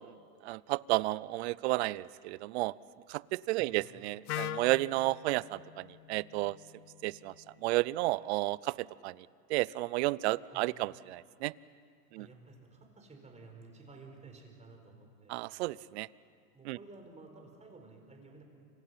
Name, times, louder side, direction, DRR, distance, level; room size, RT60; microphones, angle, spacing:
voice 1, 0.4-2.7 3.1-6.6 7.0-7.3 7.6-9.1 9.5-11.5 12.1-12.3 15.3-16.1 16.7-16.8, right 20 dB, 45° right, 22 dB, 0.5 m, -32 dB
Wind instrument woodwind instrument, 4.3-8.2, left 13 dB, 65° left, 0.9 m, -44 dB
voice 2, 12.1-15.4 16.5-18.4, right 3 dB, 15° right, 3 dB, 4.5 m, -53 dB
29.0 x 25.5 x 5.7 m, 2.3 s
hypercardioid pair, 115°, 47 cm